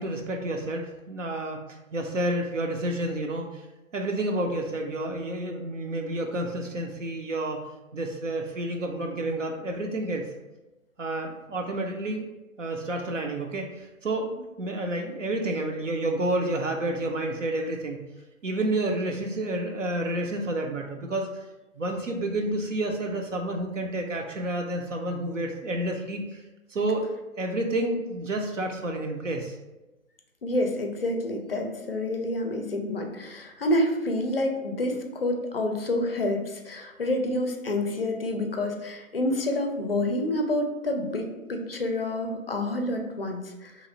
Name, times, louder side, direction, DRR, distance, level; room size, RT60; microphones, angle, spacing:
voice 1, 0.0-1.6 1.9-3.6 3.9-7.6 7.9-10.3 11.0-12.3 12.6-18.0 18.4-21.4 21.8-26.4 26.7-29.6, right 1 dB, 60° right, 2 dB, 0.5 m, -30 dB
voice 2, 30.4-43.9, left 1 dB, 45° left, 4 dB, 0.4 m, -28 dB
3.0 x 2.4 x 3.7 m, 1.0 s
figure-of-eight pair, 140°, 42 cm